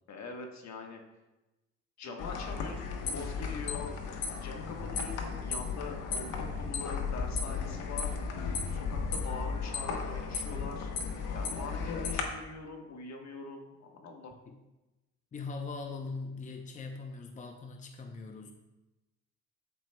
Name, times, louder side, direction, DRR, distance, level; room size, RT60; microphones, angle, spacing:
voice 1, 0.1-1.0 2.0-4.0 4.4-8.3 8.7-10.9 11.3-14.3, left 4 dB, 65° left, 2 dB, 1.2 m, -43 dB
sound 1, 2.2-12.2, left 5 dB, 90° left, 1.0 m, -35 dB
voice 2, 15.3-18.5, left 4 dB, 25° left, 4 dB, 0.6 m, -41 dB
12.5 x 4.5 x 2.2 m, 1.0 s
cardioid pair, 90°, 30 cm